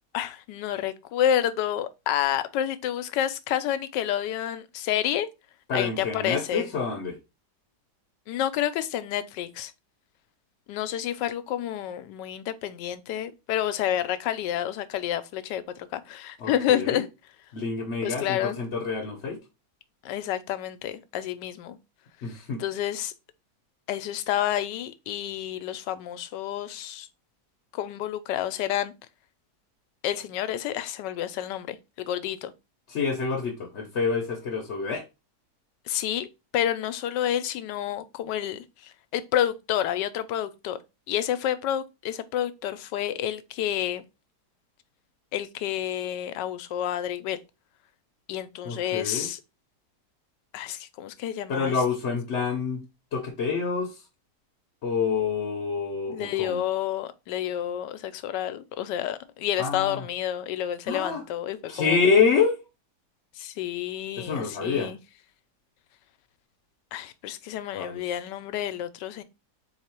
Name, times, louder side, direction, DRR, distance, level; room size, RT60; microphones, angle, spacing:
voice 1, 0.1-5.3 5.7-6.7 8.3-9.7 10.7-17.1 18.0-18.6 20.0-21.8 22.6-23.1 23.9-27.1 27.7-28.9 30.0-32.5 35.9-36.3 36.5-40.8 41.1-44.0 45.3-47.4 48.3-49.4 50.5-51.7 56.1-62.0 63.4-65.0 66.9-69.2, left 11 dB, 90° left, 1.2 m, -29 dB
voice 2, 5.7-7.2 16.4-17.0 17.5-19.4 22.2-22.6 32.9-35.0 48.6-49.3 51.5-52.8 53.1-54.0 54.8-56.6 59.6-60.0 60.9-61.2 61.7-62.6 64.2-64.9 67.7-68.0, left 5 dB, 55° left, 0.9 m, -27 dB
4.0 x 3.0 x 4.3 m
omnidirectional pair, 1.8 m